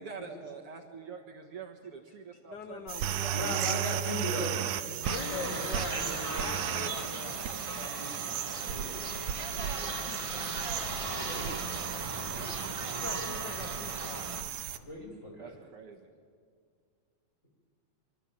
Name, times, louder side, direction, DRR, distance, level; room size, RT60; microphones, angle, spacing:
voice 1, 0.0-2.9 3.2-3.7 9.6-10.0 15.4-16.1, right 5 dB, 55° right, 1 dB, 2.2 m, -45 dB
voice 2, 2.5-3.7 4.8-7.8 12.9-14.9, left 6 dB, 80° left, 7 dB, 0.9 m, -43 dB
sound 1, 2.9-14.8, right 10 dB, 80° right, 2.2 m, -35 dB
voice 3, 3.3-4.8 5.3-6.9 7.7-8.9 11.1-11.7 12.1-12.5 14.8-15.5, left 1 dB, 25° left, -1 dB, 6.1 m, -39 dB
sound 2, 5.0-14.4, right 2 dB, 15° right, 1.1 m, -38 dB
25.5 x 24.0 x 7.6 m, 2.1 s
omnidirectional pair, 3.4 m